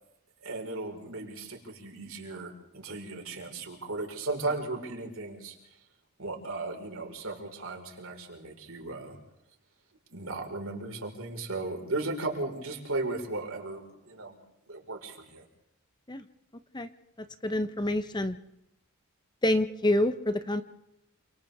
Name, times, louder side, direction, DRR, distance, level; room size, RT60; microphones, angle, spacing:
voice 1, 0.4-5.8 6.2-9.2 10.1-14.4 14.7-15.4, right 2 dB, 65° right, 1 dB, 4.9 m, -36 dB
voice 2, 17.4-18.4 19.4-20.6, left 1 dB, 20° left, 10 dB, 0.8 m, -27 dB
28.5 x 27.0 x 3.6 m, 0.82 s
head